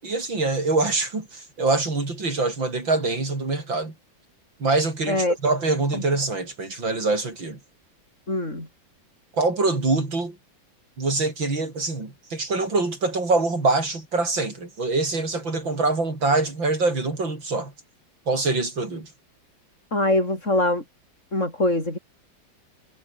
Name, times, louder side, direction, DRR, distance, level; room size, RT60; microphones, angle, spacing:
voice 1, 0.0-3.9 4.6-7.6 9.3-10.4 11.0-17.7 18.3-19.1, right 3 dB, 75° right, 6.3 m, -24 dB
voice 2, 8.3-8.7 19.9-20.8 21.3-22.0, left 1 dB, 35° left, 7.8 m, -23 dB
omnidirectional pair, 2.1 m